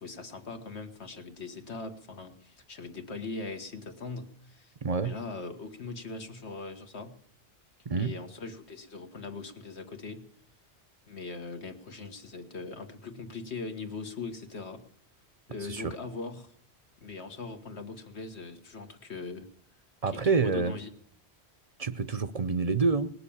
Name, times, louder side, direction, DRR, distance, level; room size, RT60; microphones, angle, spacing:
voice 1, 0.0-7.2 8.0-10.2 11.1-14.8 15.5-16.5 17.0-19.5 20.1-20.9, left 3 dB, 75° left, 7 dB, 1.8 m, -40 dB
voice 2, 4.8-5.1 7.9-8.1 15.7-15.8 20.0-20.7 21.8-23.1, right 4 dB, 40° right, 12 dB, 0.6 m, -27 dB
20.0 x 6.9 x 8.6 m, 0.70 s
omnidirectional pair, 1.1 m